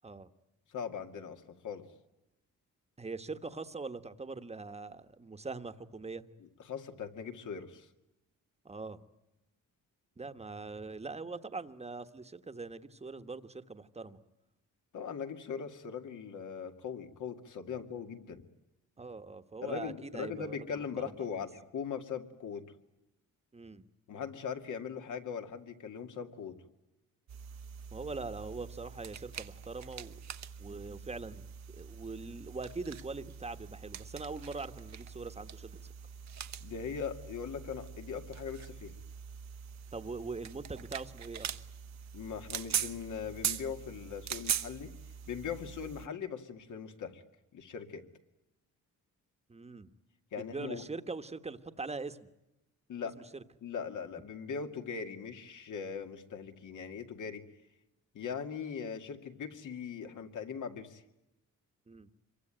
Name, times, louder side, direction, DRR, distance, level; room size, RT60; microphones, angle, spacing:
voice 1, 0.7-1.8 6.6-7.9 14.9-18.4 19.6-22.6 24.1-26.6 36.6-38.9 42.1-44.9 45.3-47.2 47.5-48.0 50.3-50.8 52.9-53.2 53.6-57.4 58.1-61.0, left 6 dB, 65° left, 6 dB, 2.4 m, -40 dB
voice 2, 3.0-6.2 8.6-9.0 10.2-14.2 17.7-17.8 19.0-21.5 23.5-23.8 27.9-30.2 30.6-31.5 31.7-35.9 39.9-41.5 49.5-49.9 50.3-52.3 53.3-53.4 61.9-62.1, right 3 dB, 20° right, 9 dB, 1.4 m, -42 dB
sound 1, 27.3-46.1, right 9 dB, 55° right, 1.1 m, -42 dB
26.5 x 23.5 x 9.1 m, 0.94 s
cardioid pair, 115°, 32 cm